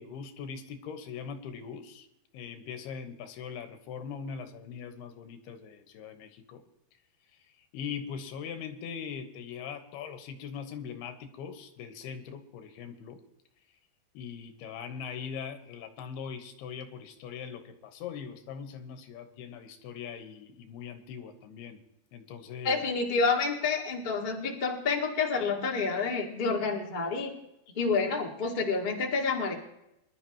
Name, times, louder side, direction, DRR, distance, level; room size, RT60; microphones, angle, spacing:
voice 1, 0.0-2.1 2.3-6.6 7.7-13.2 14.1-21.8 22.1-22.8, left 7 dB, 90° left, 8 dB, 3.1 m, -41 dB
voice 2, 22.6-27.3 27.7-29.5, left 4 dB, 40° left, 0 dB, 0.6 m, -28 dB
25.0 x 12.0 x 3.0 m, 0.85 s
omnidirectional pair, 4.5 m